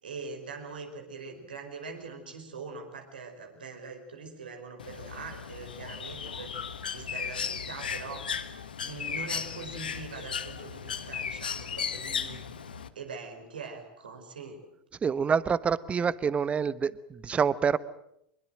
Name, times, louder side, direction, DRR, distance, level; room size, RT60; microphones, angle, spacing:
voice 1, 0.0-6.5 6.9-12.4 12.9-14.6, right 4 dB, 80° right, 4 dB, 5.0 m, -43 dB
Bird, 4.8-12.9, left 7 dB, 80° left, 1.4 m, -36 dB
voice 2, 15.0-17.8, right 6 dB, 25° right, 18 dB, 1.1 m, -27 dB
24.5 x 22.0 x 7.8 m, 0.78 s
figure-of-eight pair, 80°, 5 cm